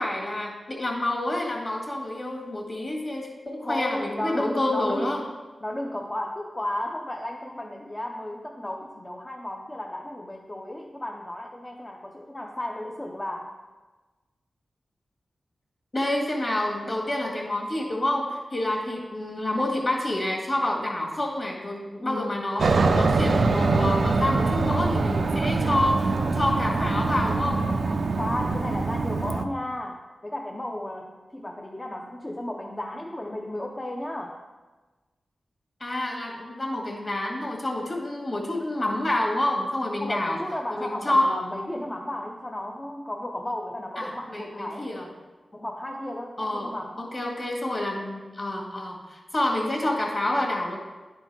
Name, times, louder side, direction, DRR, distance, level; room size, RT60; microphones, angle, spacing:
voice 1, 0.0-5.2 15.9-27.7 35.8-40.4 40.7-41.4 44.0-45.1 46.4-50.8, left 1 dB, 35° left, -1 dB, 1.9 m, -28 dB
voice 2, 3.6-5.2 5.6-13.5 22.0-22.5 28.2-34.4 40.0-44.9 45.5-47.1, left 1 dB, 20° left, 1 dB, 0.6 m, -34 dB
Aircraft, 22.6-29.4, right 3 dB, 70° right, 0.4 m, -24 dB
11.0 x 4.5 x 4.6 m, 1.3 s
wide cardioid pair, 105°, 0 cm